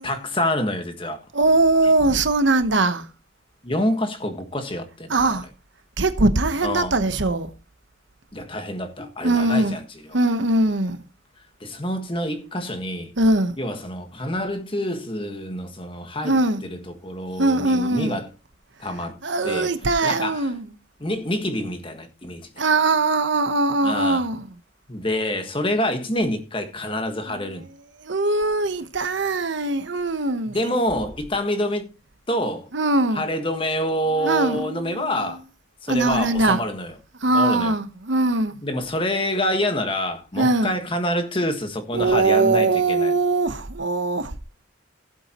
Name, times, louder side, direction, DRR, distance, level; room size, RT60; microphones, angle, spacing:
voice 1, 0.0-1.3 3.6-5.2 6.6-7.0 8.3-9.8 11.6-13.1 13.6-18.3 18.8-19.2 19.4-19.7 20.0-20.5 21.0-22.5 23.8-24.2 24.9-27.6 30.5-31.9 32.3-32.7 33.1-35.4 35.8-36.9 37.3-37.7 38.6-43.1, left 1 dB, 25° left, 1.5 m, -27 dB
voice 2, 1.3-3.1 5.1-5.5 6.0-7.5 9.2-9.8 10.1-11.0 13.2-13.5 16.2-16.6 17.4-18.2 19.2-20.7 22.6-24.5 27.3-27.7 28.0-30.6 32.7-33.3 34.2-35.3 35.9-36.6 37.2-38.6 40.4-40.7 41.9-44.3, right 2 dB, 65° right, 1.0 m, -21 dB
16.0 x 8.3 x 3.0 m
head